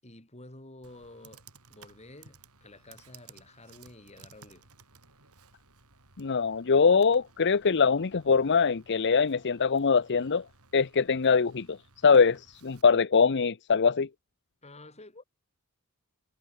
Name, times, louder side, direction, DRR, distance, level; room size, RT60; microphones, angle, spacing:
voice 1, 0.0-1.4 1.7-4.7 14.6-15.2, left 2 dB, 30° left, 7.6 m, -50 dB
Computer keyboard, 0.8-12.8, right 5 dB, 80° right, 5.8 m, -58 dB
voice 2, 6.2-10.4 10.7-11.8 12.0-14.1, left 5 dB, 55° left, 0.7 m, -23 dB
head